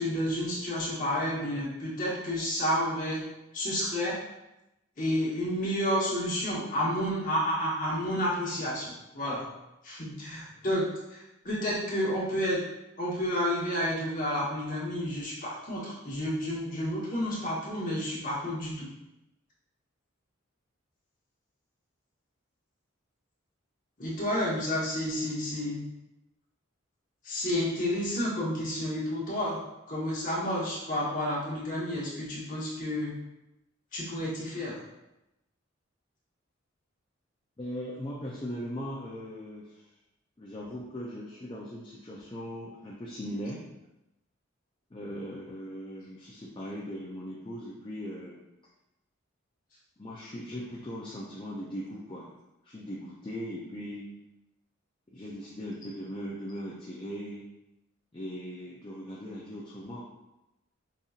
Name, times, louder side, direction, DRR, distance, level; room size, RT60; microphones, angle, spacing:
voice 1, 0.0-3.2 3.5-4.2 5.0-9.5 9.8-10.8 11.1-12.6 13.0-18.9 24.0-25.8 27.2-29.6 29.9-33.2 33.9-34.8, equal, 40° left, -6 dB, 1.1 m, -30 dB
voice 2, 37.6-39.9 40.4-43.6 44.9-48.4 50.0-52.3 52.6-54.1 55.1-57.4 58.1-60.0, equal, 25° left, -5 dB, 0.4 m, -39 dB
5.3 x 2.7 x 2.4 m, 0.91 s
head